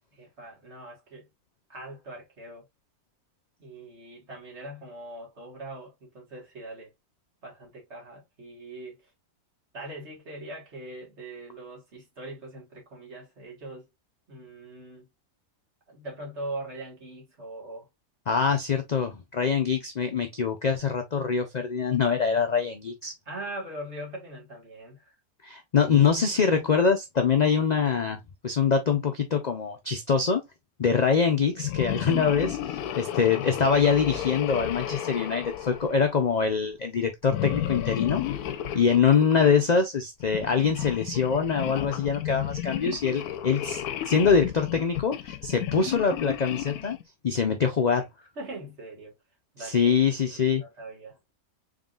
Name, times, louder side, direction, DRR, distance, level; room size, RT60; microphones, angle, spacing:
voice 1, 0.2-1.3 1.7-2.7 3.6-6.9 7.4-9.0 9.7-13.9 14.3-15.1 15.9-17.9 23.3-25.1 48.4-49.1 49.5-50.0 50.3-51.1, right 1 dB, 50° right, 2.0 m, -41 dB
voice 2, 18.3-23.1 25.4-28.2 28.4-30.4 30.8-38.2 38.7-47.0 47.2-48.1 49.6-50.6, left 6 dB, 65° left, 0.4 m, -24 dB
sound 1, 31.6-36.4 37.3-39.6 40.2-47.0, left 12 dB, 80° left, 1.1 m, -33 dB
3.8 x 3.7 x 2.4 m
omnidirectional pair, 1.6 m